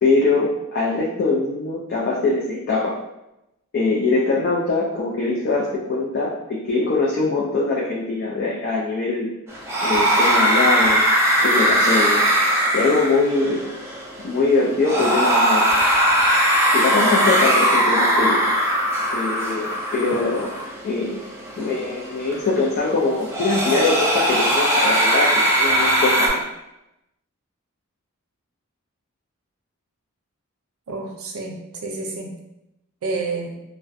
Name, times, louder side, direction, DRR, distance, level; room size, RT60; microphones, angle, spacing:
voice 1, 0.0-3.0 3.7-9.3 9.8-11.0 11.4-12.2 12.7-13.6 14.2-15.7 16.7-18.4 19.1-19.7 19.9-20.5 20.8-21.2 21.6-26.4, left 3 dB, 50° left, -4 dB, 0.4 m, -22 dB
sound 1, 9.5-26.3, equal, 15° right, 0.4 m, -20 dB
voice 2, 30.9-32.3 33.0-33.6, right 3 dB, 90° right, 2 dB, 0.5 m, -29 dB
2.4 x 2.1 x 2.5 m, 0.89 s
head